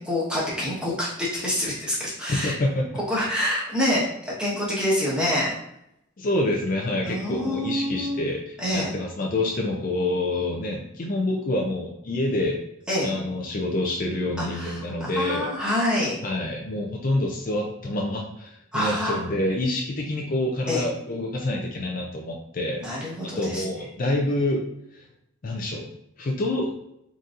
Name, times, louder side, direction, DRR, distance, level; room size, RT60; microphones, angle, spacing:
voice 1, 0.0-2.5 3.1-5.5 7.0-8.3 8.6-8.9 12.9-13.1 14.4-16.1 18.7-19.2 20.7-20.8 22.8-23.6, left 1 dB, 5° right, -7 dB, 1.1 m, -26 dB
voice 2, 2.2-2.9 6.2-12.6 13.0-15.5 16.2-23.0 23.2-24.6 24.9-25.0 25.4-25.9 26.2-26.7, left 1 dB, 40° left, 0 dB, 0.4 m, -27 dB
3.9 x 3.9 x 2.5 m, 0.81 s
head